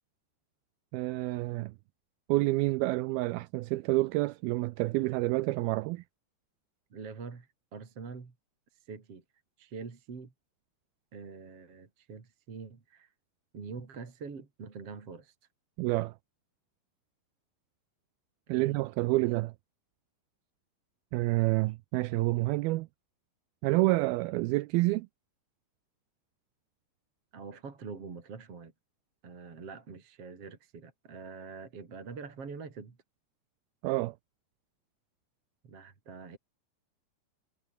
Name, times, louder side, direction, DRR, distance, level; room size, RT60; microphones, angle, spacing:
voice 1, 0.9-1.8 2.3-6.0 15.8-16.2 18.5-19.5 21.1-22.9 23.6-25.1 33.8-34.2, right 20 dB, 80° right, 2.4 m, -28 dB
voice 2, 6.9-8.3 8.8-9.2 9.6-10.3 11.1-13.1 13.5-15.3 18.5-18.8 19.1-19.3 27.3-28.7 29.2-33.0 35.6-36.4, right 5 dB, 40° right, 4.1 m, -45 dB
omnidirectional pair, 4.6 m